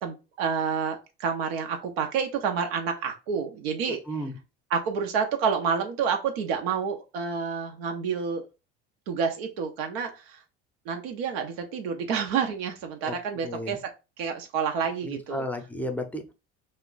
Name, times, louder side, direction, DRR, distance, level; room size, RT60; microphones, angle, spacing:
voice 1, 0.0-4.0 4.7-8.5 9.1-10.4 10.9-13.9 14.2-15.4, right 6 dB, 90° right, 4 dB, 0.5 m, -29 dB
voice 2, 3.9-4.4 13.0-13.1 13.4-13.8 15.0-16.2, left 1 dB, 5° left, 6 dB, 0.5 m, -33 dB
2.3 x 2.1 x 3.7 m, 0.29 s
supercardioid pair, 90°, 31 cm